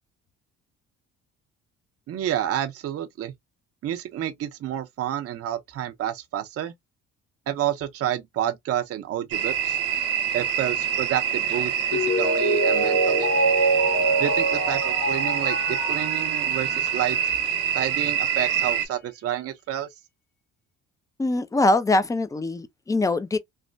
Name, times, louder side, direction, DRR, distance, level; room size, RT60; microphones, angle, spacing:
voice 1, 2.1-3.3 3.8-6.7 7.5-9.8 10.3-13.3 14.2-17.3 17.7-19.9, right 11 dB, 50° right, 0.6 m, -29 dB
sound 1, 9.3-18.9, right 8 dB, 80° right, 0.8 m, -26 dB
Mallet percussion, 11.9-17.4 17.8-17.9, right 2 dB, 70° left, 1.5 m, -25 dB
voice 2, 21.2-23.4, left 2 dB, 10° left, 0.4 m, -23 dB
3.1 x 2.1 x 2.5 m
supercardioid pair, 75°, 32 cm